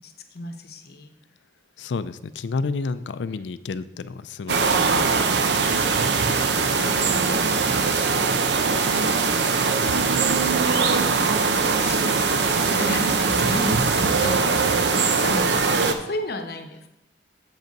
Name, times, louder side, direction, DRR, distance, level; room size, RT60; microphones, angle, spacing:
voice 1, 0.0-1.1 6.7-7.7 8.9-9.7 11.5-16.9, left 1 dB, 60° left, 6 dB, 0.9 m, -33 dB
voice 2, 1.8-6.1, left 4 dB, 80° left, 14 dB, 0.4 m, -31 dB
sound 1, 4.5-15.9, right 4 dB, 75° right, 0.6 m, -21 dB
7.5 x 5.3 x 5.2 m, 0.87 s
head